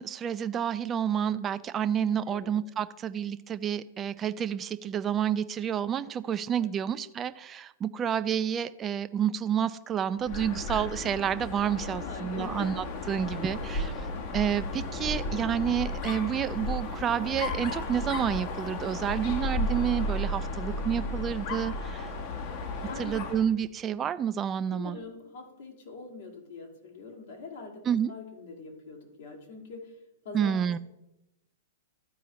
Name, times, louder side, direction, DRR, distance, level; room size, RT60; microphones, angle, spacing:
voice 1, 0.0-12.7 13.1-13.9 14.3-22.1 23.0-25.0 27.9-28.1 30.3-30.8, right 9 dB, 25° right, 12 dB, 0.3 m, -29 dB
Dog, 10.2-23.5, left 2 dB, 50° left, 1.0 m, -34 dB
voice 2, 11.8-12.7 13.4-13.6 20.5-20.9 22.8-23.1 24.7-27.8 28.1-30.0 30.2-30.6, left 4 dB, 65° left, 0 dB, 2.3 m, -43 dB
13.0 x 4.6 x 3.0 m, 0.91 s
hypercardioid pair, 105°, 0 cm